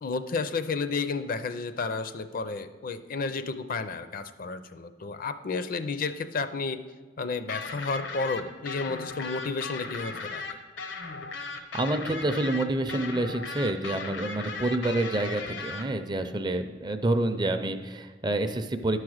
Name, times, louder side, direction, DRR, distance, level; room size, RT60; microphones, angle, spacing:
voice 1, 0.0-6.8 7.2-10.4, left 4 dB, 50° left, 10 dB, 0.5 m, -32 dB
sound 1, 7.5-15.8, left 4 dB, 85° left, 0.9 m, -37 dB
voice 2, 11.7-19.0, right 2 dB, 25° right, 8 dB, 0.5 m, -28 dB
11.0 x 4.8 x 6.4 m, 1.4 s
head